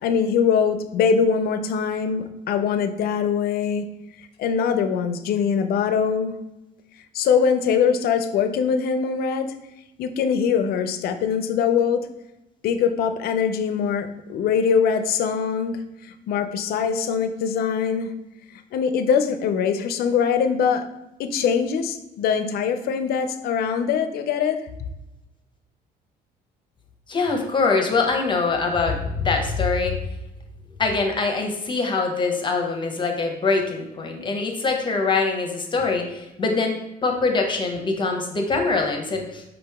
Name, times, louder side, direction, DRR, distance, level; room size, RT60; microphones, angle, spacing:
voice 1, 0.0-3.9 4.4-6.4 7.1-9.5 10.0-12.1 12.6-18.1 18.7-20.9 21.2-24.6, left 6 dB, 65° left, 9 dB, 0.5 m, -22 dB
voice 2, 27.1-30.0 30.8-39.4, left 4 dB, 30° left, 3 dB, 0.7 m, -23 dB
5.0 x 2.9 x 3.4 m, 0.93 s
cardioid pair, 110°, 17 cm